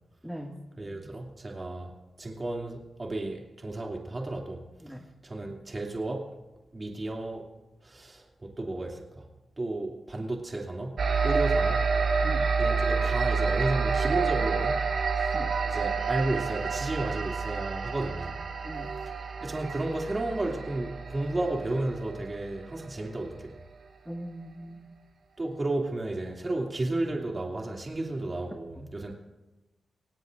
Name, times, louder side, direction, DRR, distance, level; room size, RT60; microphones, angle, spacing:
voice 1, 0.2-0.6 4.8-5.0 12.2-12.5 15.3-15.5 18.6-18.9 24.0-24.9 28.8-28.9, equal, 5° right, 1 dB, 1.8 m, -40 dB
voice 2, 0.8-1.9 2.2-4.6 4.9-5.0 5.2-6.3 6.7-7.4 7.8-9.3 9.6-11.0 11.2-11.8 12.6-14.8 15.2-15.4 15.6-18.4 19.4-23.6 25.4-29.1, right 2 dB, 35° right, 0 dB, 2.6 m, -33 dB
sound 1, 11.0-22.8, right 5 dB, 70° right, 1.9 m, -28 dB
25.5 x 18.0 x 2.6 m, 1.1 s
cardioid pair, 55°, 0 cm